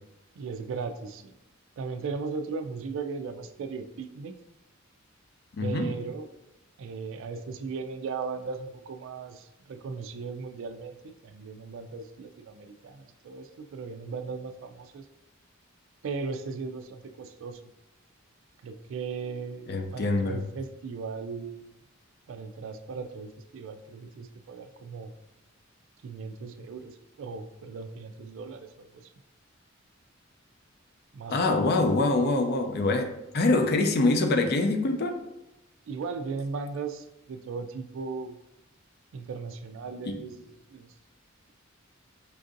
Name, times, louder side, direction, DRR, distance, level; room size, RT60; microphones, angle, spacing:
voice 1, 0.4-1.3 1.8-4.3 5.6-6.3 6.8-15.0 16.0-17.6 18.6-19.7 19.9-21.7 22.3-25.1 26.0-29.1 31.1-31.7 35.9-38.4 39.1-40.9, right 4 dB, 65° right, 8 dB, 0.3 m, -37 dB
voice 2, 5.6-5.9 19.7-20.4 31.3-35.2 40.0-40.2, left 2 dB, 50° left, 5 dB, 0.4 m, -25 dB
4.5 x 2.5 x 2.5 m, 0.93 s
head